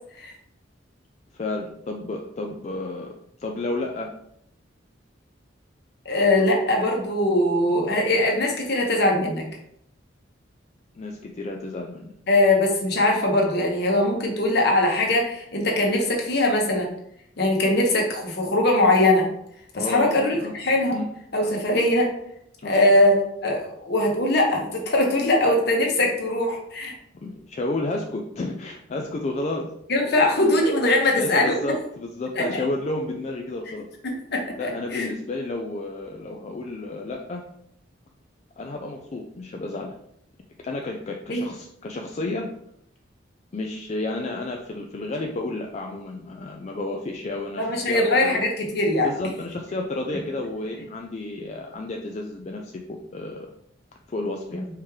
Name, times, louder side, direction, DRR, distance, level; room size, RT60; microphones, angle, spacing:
voice 1, 1.3-3.1 3.4-4.1 10.9-12.1 19.7-20.5 20.9-21.1 21.4-21.6 22.6-22.8 27.2-29.7 31.2-33.9 34.6-37.5 38.6-40.0 40.6-42.5 43.5-48.4 49.0-53.5 54.1-54.6, left 2 dB, 35° left, 1 dB, 0.4 m, -31 dB
voice 2, 6.0-9.4 12.3-16.9 17.4-19.3 19.7-21.0 21.3-22.1 22.6-23.1 23.4-26.9 29.9-31.6 32.3-32.6 34.0-35.1 41.3-41.5 47.6-49.1 54.5-54.7, left 1 dB, 60° left, 0 dB, 1.1 m, -21 dB
4.4 x 3.2 x 3.6 m, 0.73 s
head